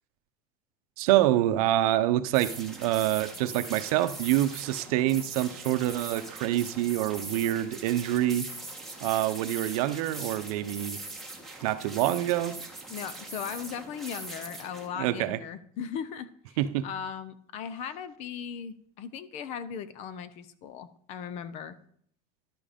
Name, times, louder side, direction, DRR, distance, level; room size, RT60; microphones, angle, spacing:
voice 1, 1.0-8.5 9.0-11.0 11.6-12.6 15.0-15.4 16.6-16.9, right 14 dB, 75° right, 0.8 m, -26 dB
sound 1, 2.3-14.9, right 2 dB, ahead, 1.4 m, -41 dB
voice 2, 12.9-16.6 16.8-21.8, left 7 dB, 35° left, 0.7 m, -38 dB
12.0 x 7.6 x 5.1 m
cardioid pair, 180°, 19 cm